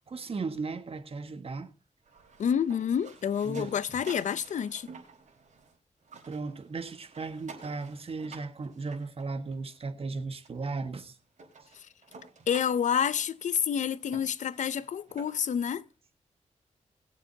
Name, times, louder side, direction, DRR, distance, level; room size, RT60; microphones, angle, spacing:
voice 1, 0.1-1.7 3.4-3.7 6.3-11.1, right 4 dB, 50° right, 1.5 m, -36 dB
Auto Rickshaw - Getting In Getting Out Getting In, 2.0-5.7 6.0-9.8 10.4-10.5 11.0-11.1 11.4-15.6, right 4 dB, 75° right, 4.5 m, -51 dB
voice 2, 2.4-4.9 11.7-11.9 12.5-15.8, left 8 dB, 75° left, 0.6 m, -29 dB
21.5 x 7.5 x 2.8 m
wide cardioid pair, 90°, 13 cm